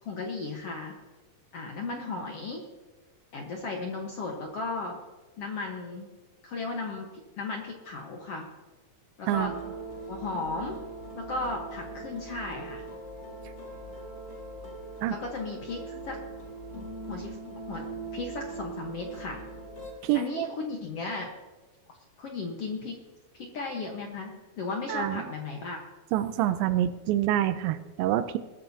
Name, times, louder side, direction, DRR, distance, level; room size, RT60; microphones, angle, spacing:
voice 1, 0.0-0.9 1.5-2.6 3.3-5.0 5.4-6.1 6.4-7.1 7.4-8.4 9.2-9.5 10.1-10.8 11.1-12.8 15.1-16.2 17.1-17.4 17.7-17.8 18.1-19.4 20.1-21.3 22.2-23.0 23.3-25.8, left 3 dB, 60° left, 1 dB, 1.7 m, -35 dB
sound 1, 9.3-19.9, right 2 dB, 25° left, 3.7 m, -41 dB
voice 2, 20.0-20.5 24.9-25.2 26.1-28.4, right 12 dB, 80° right, 12 dB, 2.3 m, -26 dB
21.0 x 14.0 x 2.8 m, 1.2 s
omnidirectional pair, 4.2 m